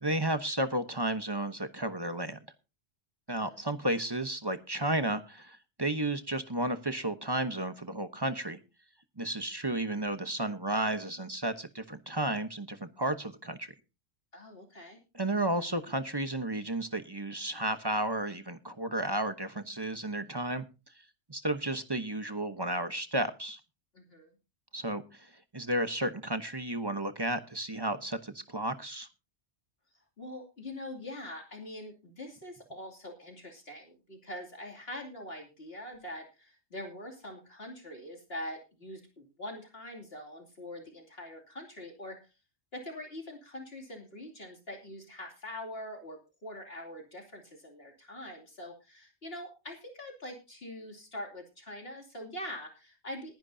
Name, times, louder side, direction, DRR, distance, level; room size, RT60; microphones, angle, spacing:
voice 1, 0.0-2.4 3.3-8.6 9.2-13.7 15.1-20.6 21.3-23.6 24.7-29.1, right 1 dB, 25° right, 9 dB, 1.0 m, -33 dB
voice 2, 3.3-3.6 14.3-15.0 23.9-24.3 30.2-42.3 42.7-53.4, left 1 dB, 60° left, 1 dB, 3.0 m, -44 dB
20.5 x 10.5 x 2.7 m, 0.29 s
omnidirectional pair, 1.2 m